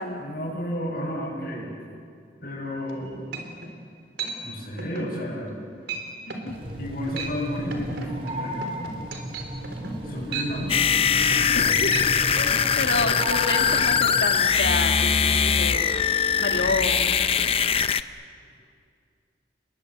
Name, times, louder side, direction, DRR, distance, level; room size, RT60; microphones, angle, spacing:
voice 1, 0.2-1.7 2.4-3.3 4.4-5.7 6.8-8.6 10.0-10.8 16.5-16.7, equal, 55° left, -4 dB, 7.3 m, -32 dB
sound 1, 2.9-3.0 3.3-3.7 4.2-4.4 4.8-5.1 5.5-5.6 5.9-6.0 6.3-6.5 7.0-7.4 7.7-11.6 11.9-12.1 12.5-12.6, right 4 dB, 80° right, 3.8 m, -35 dB
sound 2, 6.5-14.3, equal, 30° right, 3.9 m, -34 dB
sound 3, 10.7-18.0, left 7 dB, 30° left, 0.6 m, -22 dB
voice 2, 11.5-15.9 16.4-17.2, left 3 dB, 75° left, 3 dB, 2.4 m, -29 dB
29.5 x 21.5 x 8.2 m, 2.2 s
head